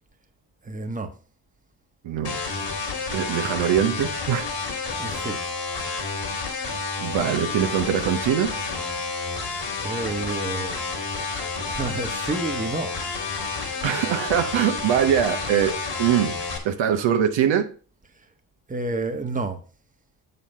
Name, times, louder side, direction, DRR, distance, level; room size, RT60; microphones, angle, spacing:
voice 1, 0.6-1.1 5.0-5.4 9.8-10.8 11.6-13.0 18.7-19.6, right 3 dB, 15° right, 1.3 m, -29 dB
voice 2, 2.0-2.4 3.1-4.5 7.0-8.5 13.8-15.7 16.0-16.3 16.6-17.7, right 9 dB, 70° right, 1.3 m, -22 dB
sound 1, 2.2-16.6, left 4 dB, 60° left, 3.1 m, -30 dB
7.4 x 5.6 x 5.4 m
supercardioid pair, 55°, 47 cm